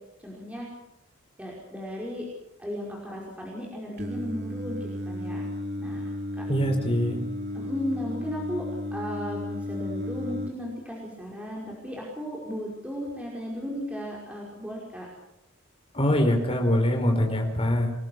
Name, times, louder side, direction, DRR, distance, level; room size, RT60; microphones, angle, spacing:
voice 1, 0.2-0.7 1.4-2.3 2.6-5.5 5.8-6.1 6.4-6.5 7.5-15.1, equal, 5° right, -3 dB, 5.2 m, -35 dB
Singing, 4.0-10.5, left 1 dB, 50° right, 2.8 m, -34 dB
voice 2, 6.5-7.2 15.9-17.9, equal, 25° left, 3 dB, 5.3 m, -23 dB
29.0 x 20.5 x 6.4 m, 0.85 s
head